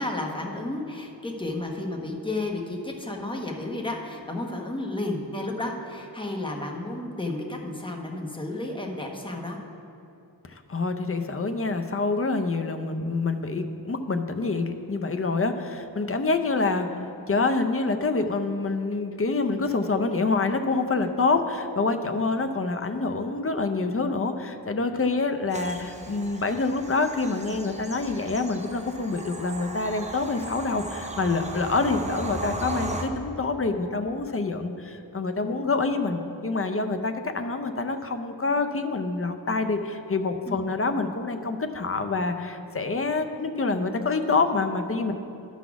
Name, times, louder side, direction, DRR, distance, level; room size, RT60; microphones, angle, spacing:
voice 1, 0.0-9.6 40.5-40.6, left 2 dB, 10° left, 1 dB, 1.0 m, -32 dB
voice 2, 10.5-45.1, left 3 dB, 30° left, 7 dB, 0.5 m, -26 dB
Bird vocalization bird call bird song / Train, 25.5-33.0, right 1 dB, 15° right, 0.7 m, -37 dB
12.0 x 4.1 x 5.8 m, 2.8 s
wide cardioid pair, 105°, 43 cm